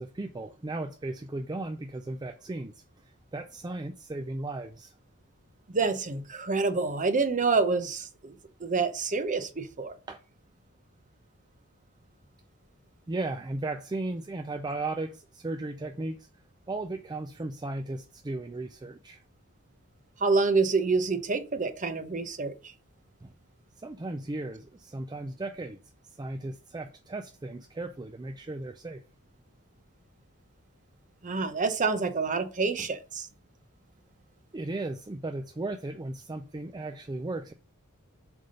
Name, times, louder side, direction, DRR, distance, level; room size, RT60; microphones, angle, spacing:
voice 1, 0.0-4.9 10.1-10.2 13.1-16.3 16.7-19.2 23.2-23.3 23.8-25.8 26.0-29.0 32.8-32.9 34.5-37.5, right 2 dB, 20° right, 0.4 m, -36 dB
voice 2, 5.7-8.3 8.6-9.9 20.2-22.5 31.2-33.3, right 4 dB, 35° right, 0.8 m, -27 dB
7.7 x 3.5 x 5.2 m
head